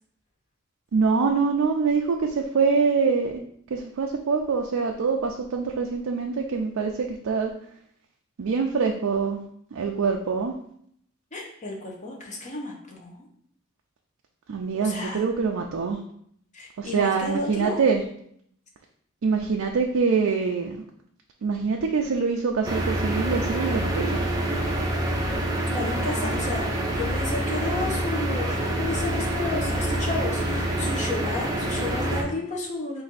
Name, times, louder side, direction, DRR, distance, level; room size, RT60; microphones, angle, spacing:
voice 1, 0.9-3.4 3.7-7.5 8.4-9.4 9.7-10.5 14.5-16.0 16.8-18.0 19.2-20.8 21.4-24.2, right 5 dB, 75° right, 2 dB, 0.4 m, -24 dB
voice 2, 11.3-13.3 14.8-15.2 16.5-17.8 25.7-33.0, left 2 dB, 35° left, -1 dB, 0.8 m, -32 dB
sound 1, 22.6-32.2, right 1 dB, 15° right, 0.5 m, -26 dB
4.1 x 2.6 x 4.0 m, 0.68 s
head